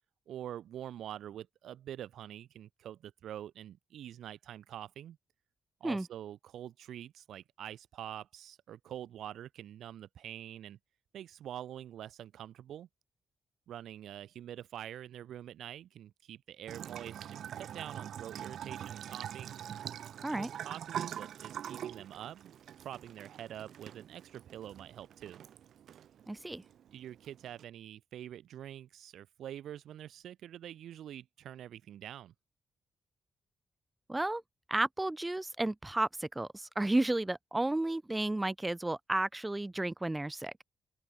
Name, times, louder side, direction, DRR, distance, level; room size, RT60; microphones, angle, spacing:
voice 1, 0.3-5.2 5.8-10.8 11.1-12.9 13.7-19.6 20.3-22.5 22.8-25.4 26.9-32.3, right 11 dB, 90° right, 5.3 m, -46 dB
Bathtub (filling or washing) / Trickle dribble, 16.7-27.6, right 10 dB, 75° right, 2.5 m, -44 dB
voice 2, 26.3-26.6 34.1-34.4 34.7-40.5, right 2 dB, 10° right, 4.1 m, -32 dB
open air
wide cardioid pair, 140°, 0 cm